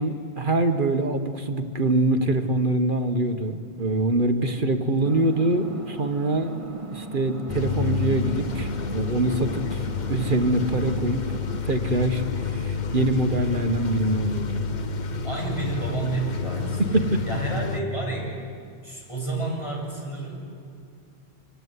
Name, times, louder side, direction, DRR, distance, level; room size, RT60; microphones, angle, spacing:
voice 1, 0.0-6.5 6.9-11.2 11.6-14.6 16.9-17.2, right 2 dB, 50° right, 6 dB, 1.5 m, -24 dB
sound 1, 5.0-11.6, right 2 dB, 30° right, 1.8 m, -38 dB
sound 2, 7.5-17.8, left 5 dB, 45° left, 1.0 m, -29 dB
voice 2, 15.2-17.0 17.2-18.3 18.8-20.4, right 2 dB, 25° left, -2 dB, 7.8 m, -30 dB
25.5 x 24.0 x 9.7 m, 2.3 s
omnidirectional pair, 1.1 m